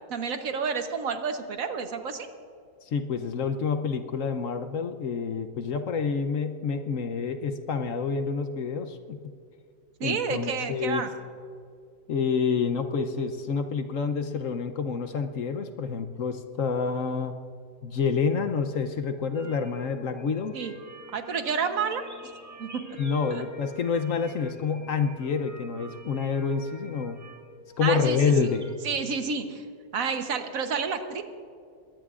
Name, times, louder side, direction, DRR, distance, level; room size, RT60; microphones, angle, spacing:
voice 1, 0.1-2.3 10.0-11.1 20.5-20.7 21.1-22.0 22.6-23.0 23.3-23.4 27.8-28.3 28.8-29.7 29.9-31.2, right 5 dB, 55° right, 7 dB, 1.3 m, -30 dB
voice 2, 2.9-9.3 10.0-11.0 12.1-17.3 17.8-20.5 23.0-27.2 27.8-28.7, left 5 dB, 60° left, 8 dB, 1.0 m, -28 dB
sound 1, 19.3-28.7, right 1 dB, 10° right, 0.9 m, -47 dB
22.5 x 18.0 x 2.5 m, 2.3 s
omnidirectional pair, 1.8 m